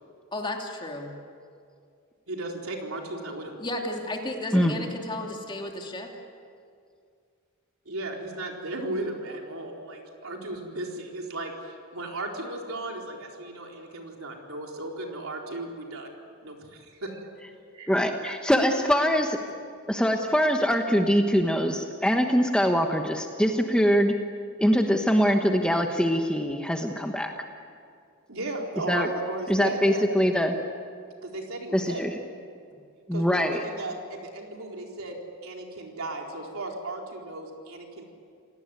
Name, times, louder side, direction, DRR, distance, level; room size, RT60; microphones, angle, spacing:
voice 1, 0.3-1.1 3.6-6.1, left 1 dB, 20° left, 1 dB, 2.7 m, -33 dB
voice 2, 2.3-3.6 7.9-16.1 16.4-17.2 17.7-17.9 18.2-18.4 28.3-30.0 31.2-32.0 33.1-38.0, right 2 dB, 70° right, 1 dB, 4.2 m, -35 dB
voice 3, 4.5-4.8 17.9-19.4 19.9-24.2 24.6-27.3 28.9-29.1 29.5-30.6 31.7-32.1 33.1-33.6, equal, 5° left, 3 dB, 1.2 m, -23 dB
27.5 x 18.5 x 9.4 m, 2.3 s
head